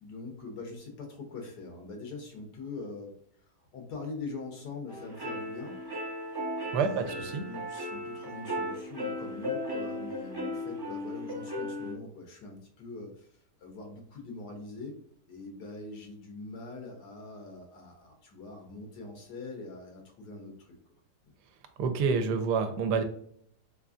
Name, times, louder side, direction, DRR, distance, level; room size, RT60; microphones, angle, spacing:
voice 1, 0.0-3.1 3.7-5.7 6.8-15.0 15.3-20.8 21.2-21.3, left 3 dB, 75° left, 3 dB, 1.5 m, -43 dB
sound 1, 4.9-11.9, left 1 dB, 25° right, 0.5 m, -36 dB
voice 2, 6.7-7.5 21.8-23.0, right 5 dB, 85° right, 8 dB, 1.2 m, -28 dB
3.7 x 3.4 x 2.4 m, 0.66 s
omnidirectional pair, 1.7 m